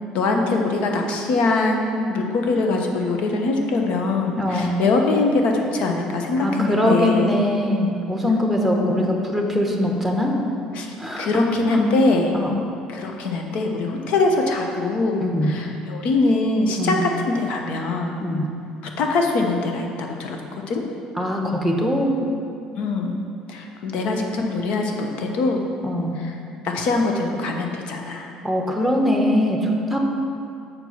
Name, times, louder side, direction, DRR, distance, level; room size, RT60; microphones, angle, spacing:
voice 1, 0.1-7.3 8.6-9.1 10.7-10.9 11.2-12.3 12.9-18.2 18.8-20.4 20.7-20.8 22.8-23.2 23.5-25.6 26.2-26.3 26.6-28.3, left 3 dB, 65° left, 2 dB, 0.9 m, -22 dB
voice 2, 4.4-4.8 6.4-10.3 11.0-11.3 11.7-11.8 12.3-12.6 15.2-15.5 16.8-17.0 18.2-18.5 21.1-22.1 25.8-26.2 28.4-30.0, left 1 dB, ahead, 1 dB, 1.1 m, -22 dB
6.7 x 4.6 x 5.7 m, 2.6 s
supercardioid pair, 100°, 2 cm